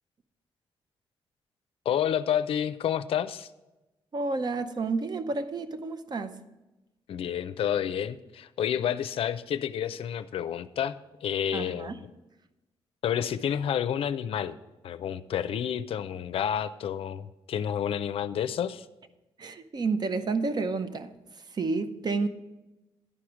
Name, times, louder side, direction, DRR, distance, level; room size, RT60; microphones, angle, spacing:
voice 1, 1.9-3.5 7.1-11.0 11.2-12.1 13.0-14.6 14.8-18.9, left 9 dB, 70° left, 13 dB, 0.4 m, -29 dB
voice 2, 4.1-6.4 11.5-12.0 19.4-21.1 21.5-22.3, right 3 dB, 45° right, 10 dB, 0.7 m, -30 dB
11.0 x 4.9 x 5.9 m, 1.0 s
cardioid pair, 75°, 10 cm